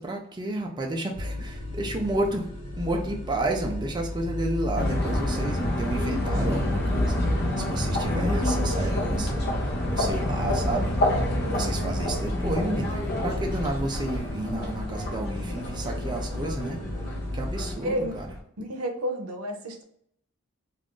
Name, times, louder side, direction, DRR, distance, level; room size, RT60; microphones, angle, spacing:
voice 1, 0.0-2.5 2.7-11.2 11.5-16.8 17.3-18.3, right 1 dB, 20° right, 1 dB, 0.4 m, -31 dB
sound 1, 1.1-17.7, left 1 dB, 75° left, 1.1 m, -34 dB
sound 2, 4.8-18.4, left 1 dB, 50° left, 0.6 m, -28 dB
voice 2, 17.8-18.2 18.6-19.8, equal, 90° right, 5 dB, 0.6 m, -30 dB
2.5 x 2.4 x 3.5 m, 0.69 s
head